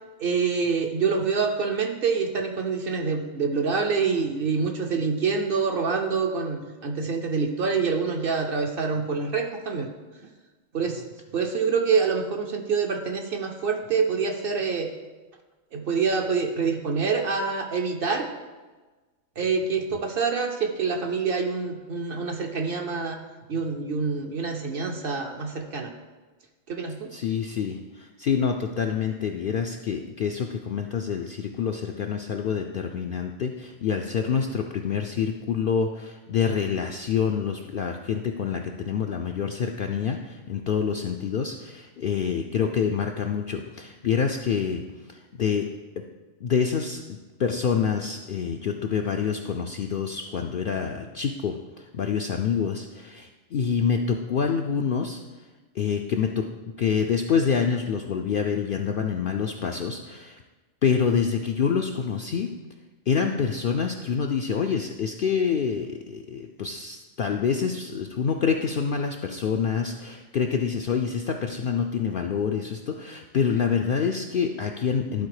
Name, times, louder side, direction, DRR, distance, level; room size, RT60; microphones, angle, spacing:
voice 1, 0.2-9.9 10.7-11.0 11.3-14.9 15.7-18.3 19.4-23.2 23.5-25.9 26.7-27.1, right 5 dB, 55° right, 4 dB, 0.8 m, -26 dB
voice 2, 27.1-44.8 45.1-45.7 46.4-55.2 55.7-56.5 56.8-60.4 60.8-62.5 63.1-75.3, left 6 dB, 65° left, 3 dB, 0.5 m, -27 dB
11.5 x 4.1 x 4.8 m, 1.2 s
omnidirectional pair, 1.4 m